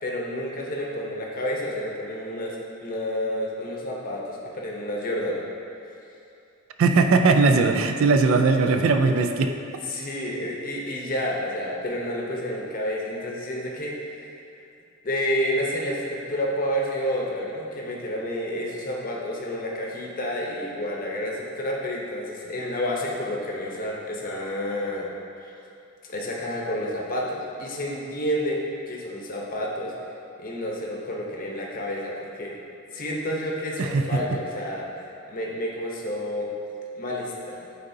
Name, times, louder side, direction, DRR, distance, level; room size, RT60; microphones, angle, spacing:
voice 1, 0.0-2.6 2.8-5.4 9.9-14.3 15.0-25.1 25.4-25.5 26.1-29.9 30.4-32.6 32.9-36.5 37.0-37.7, equal, 40° left, -2 dB, 0.8 m, -30 dB
voice 2, 6.8-9.6 33.8-34.2, right 4 dB, 60° right, 6 dB, 0.3 m, -19 dB
9.2 x 3.8 x 2.7 m, 2.6 s
head